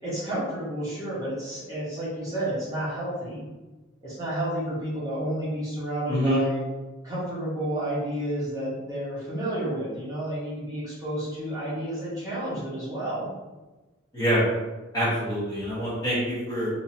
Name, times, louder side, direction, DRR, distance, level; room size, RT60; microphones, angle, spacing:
voice 1, 0.0-3.4 4.0-6.6 7.0-13.3, right 1 dB, 15° right, -10 dB, 1.2 m, -31 dB
voice 2, 6.1-6.4 14.1-14.4 14.9-16.7, equal, 20° left, -10 dB, 1.1 m, -25 dB
3.8 x 2.8 x 2.8 m, 1.2 s
head